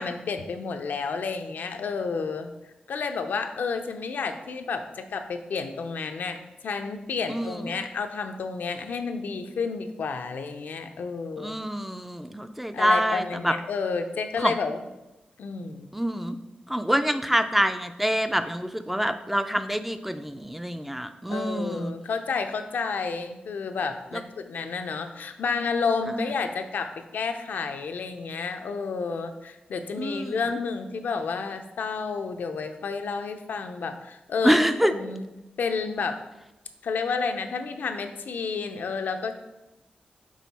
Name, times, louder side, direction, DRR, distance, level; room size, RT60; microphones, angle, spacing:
voice 1, 0.0-2.5 2.9-6.4 6.6-11.6 12.7-14.9 15.4-15.9 21.3-34.6 34.9-35.3 35.6-36.2 36.8-39.3, left 5 dB, 85° left, 7 dB, 0.5 m, -30 dB
voice 2, 7.3-7.6 11.4-13.5 14.4-14.5 15.9-16.4 16.7-21.9 26.2-26.3 30.0-30.4 34.4-34.9, equal, 5° right, 9 dB, 0.3 m, -26 dB
6.3 x 3.7 x 4.1 m, 0.98 s
wide cardioid pair, 130°, 3 cm